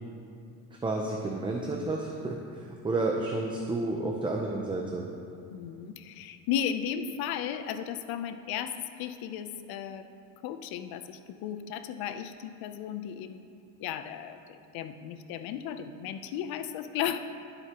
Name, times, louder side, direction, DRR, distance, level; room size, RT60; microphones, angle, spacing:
voice 1, 0.8-5.1, right 2 dB, 15° right, 0 dB, 0.6 m, -31 dB
voice 2, 5.5-10.1 10.4-13.5 13.8-17.2, left 9 dB, 85° left, 9 dB, 0.7 m, -35 dB
23.5 x 7.9 x 3.0 m, 2.5 s
cardioid pair, 165°, 35 cm